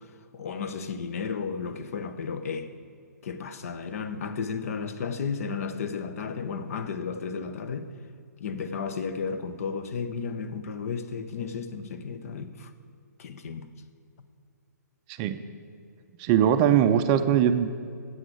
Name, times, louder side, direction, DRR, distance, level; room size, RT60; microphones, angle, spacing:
voice 1, 0.3-2.7 3.2-7.9 8.4-12.7 13.2-13.7, left 5 dB, 50° left, 0.8 m, -33 dB
voice 2, 16.2-17.8, right 9 dB, 25° right, 0.4 m, -21 dB
9.6 x 7.9 x 6.5 m
figure-of-eight pair, 130°, 10 cm